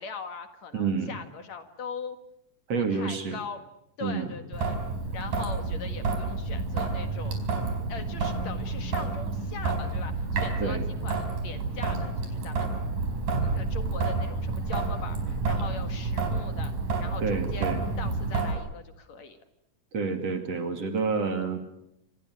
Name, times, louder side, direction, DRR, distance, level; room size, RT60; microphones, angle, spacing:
voice 1, 0.0-2.2 2.7-3.6 4.0-4.8 5.1-7.4 7.9-12.7 13.5-16.7 17.0-19.4, left 5 dB, 55° left, 8 dB, 2.8 m, -41 dB
voice 2, 0.7-1.1 2.7-3.4 4.0-4.3 10.6-10.9 17.2-17.8 19.9-21.6, right 5 dB, 50° right, 6 dB, 3.5 m, -29 dB
Traffic noise roadway noise / Drip / Trickle dribble, 4.5-18.5, right 3 dB, 65° right, 6.0 m, -29 dB
28.0 x 27.0 x 6.4 m, 0.80 s
omnidirectional pair, 3.9 m